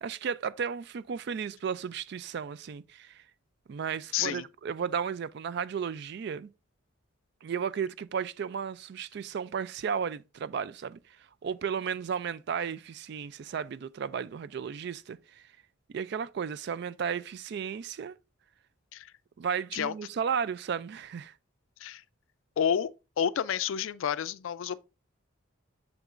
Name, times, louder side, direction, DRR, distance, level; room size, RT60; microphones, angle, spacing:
voice 1, 0.0-3.2 3.7-6.5 7.4-11.0 11.4-15.5 15.9-18.1 19.4-21.3, right 7 dB, 55° right, 0.3 m, -34 dB
voice 2, 4.1-4.5 18.9-19.1 19.7-19.9 21.8-22.0 22.6-22.9 23.2-24.9, left 8 dB, 75° left, 0.4 m, -29 dB
7.2 x 6.6 x 2.5 m
head